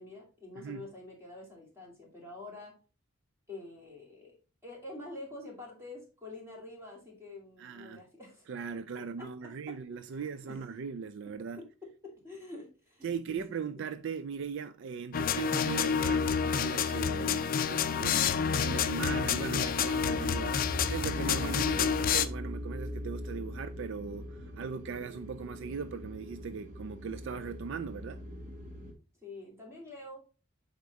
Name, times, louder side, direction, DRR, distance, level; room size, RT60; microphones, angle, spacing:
voice 1, 0.0-2.7 3.5-4.3 4.6-8.5 8.9-9.5 10.1-10.6 11.6-11.7 12.2-13.8 29.2-30.2, left 2 dB, 10° right, 2.5 m, -47 dB
voice 2, 0.5-0.9 7.6-8.0 8.5-11.6 13.0-28.2, right 6 dB, 60° right, 0.4 m, -39 dB
sound 1, 15.1-22.2, left 7 dB, 40° left, 0.4 m, -29 dB
sound 2, 18.3-28.9, equal, 40° right, 1.2 m, -41 dB
8.3 x 3.6 x 4.0 m
head